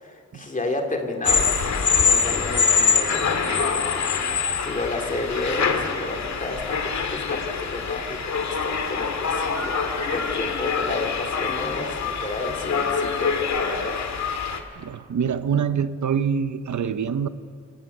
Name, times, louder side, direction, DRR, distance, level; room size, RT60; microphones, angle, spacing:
voice 1, 0.0-4.3 4.6-14.0, left 2 dB, 25° left, 3 dB, 2.9 m, -31 dB
sound 1, 1.2-14.6, left 5 dB, 70° left, 2.0 m, -24 dB
voice 2, 14.8-17.3, right 7 dB, 80° right, 12 dB, 1.1 m, -25 dB
28.0 x 15.5 x 9.3 m, 2.2 s
wide cardioid pair, 175°, 29 cm